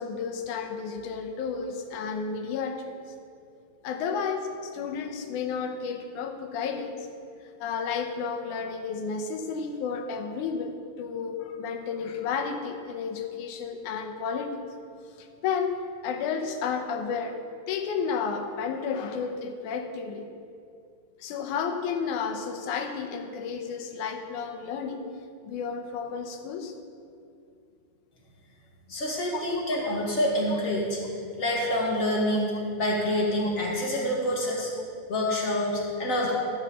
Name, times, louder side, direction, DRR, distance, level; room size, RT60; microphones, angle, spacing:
voice 1, 0.0-3.0 3.8-7.0 7.6-14.6 15.2-17.4 17.7-20.3 21.2-25.0 25.4-26.7 29.3-29.6 33.4-33.5, left 6 dB, 90° left, 6 dB, 2.3 m, -32 dB
voice 2, 28.9-31.0 31.4-32.5 32.8-34.7 35.1-36.3, left 1 dB, 30° left, -3 dB, 2.0 m, -27 dB
13.5 x 5.8 x 7.2 m, 2.5 s
omnidirectional pair, 3.4 m